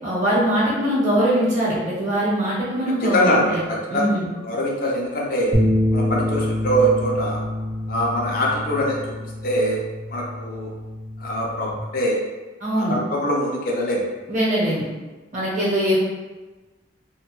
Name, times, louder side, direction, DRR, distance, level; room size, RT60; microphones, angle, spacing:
voice 1, 0.0-3.6 3.9-4.3 12.6-13.0 14.3-14.8 15.3-16.1, equal, 40° right, -7 dB, 0.9 m, -21 dB
voice 2, 3.0-4.1 4.4-5.5 5.9-7.4 7.9-9.8 10.1-10.7 11.2-12.2 12.7-14.0, equal, 50° left, -2 dB, 0.5 m, -23 dB
sound 1, 5.5-11.8, left 1 dB, 5° right, 0.5 m, -26 dB
2.5 x 2.2 x 3.0 m, 1.2 s
head